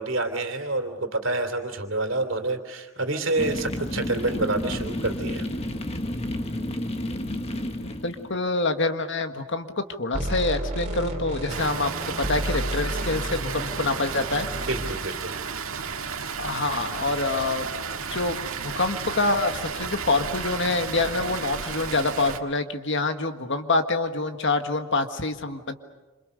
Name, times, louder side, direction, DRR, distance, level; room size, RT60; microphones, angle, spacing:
voice 1, 0.0-5.5 14.6-15.4, right 2 dB, 60° right, 6 dB, 3.1 m, -28 dB
sound 1, 3.4-8.4, left 1 dB, 30° left, 1.5 m, -31 dB
voice 2, 7.8-14.5 16.4-17.7 18.1-25.7, left 3 dB, 55° left, 7 dB, 1.7 m, -26 dB
sound 2, 10.1-14.9, right 1 dB, 30° right, 3.3 m, -31 dB
Water, 11.5-22.4, right 6 dB, 75° right, 1.9 m, -33 dB
27.5 x 27.5 x 6.7 m, 1.2 s
head